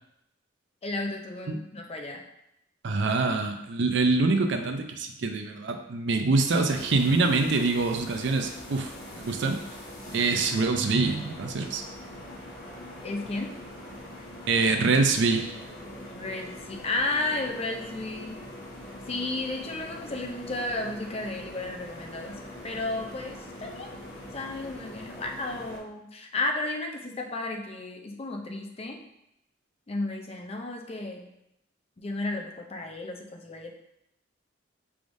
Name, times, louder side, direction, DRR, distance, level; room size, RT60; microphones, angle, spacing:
voice 1, 0.8-2.2 10.2-10.3 13.0-13.5 16.1-18.4 19.1-22.4 22.6-23.9 24.3-29.0 29.9-31.3 32.0-33.7, left 2 dB, 30° left, 2 dB, 0.5 m, -33 dB
voice 2, 2.8-9.6 10.1-11.8 14.5-15.5, right 3 dB, 60° right, 5 dB, 0.5 m, -25 dB
sound 1, 6.4-25.8, left 1 dB, 60° left, 1.2 m, -43 dB
4.8 x 3.5 x 2.6 m, 0.83 s
head